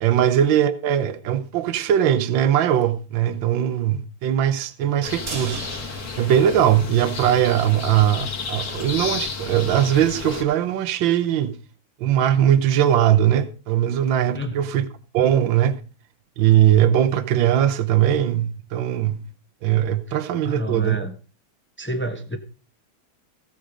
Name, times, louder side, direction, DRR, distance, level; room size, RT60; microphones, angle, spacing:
voice 1, 0.0-5.6 6.2-11.5 12.0-14.8 15.1-15.8 16.4-19.3 19.6-21.0, right 10 dB, 75° right, 1.6 m, -20 dB
sound 1, 5.0-10.4, left 5 dB, 40° left, 1.8 m, -32 dB
sound 2, 5.3-7.4 7.7-7.8 8.2-8.3, right 3 dB, 45° right, 2.2 m, -37 dB
voice 2, 20.4-21.1 21.8-22.4, equal, 10° left, 0.7 m, -29 dB
15.0 x 7.7 x 5.0 m
omnidirectional pair, 2.2 m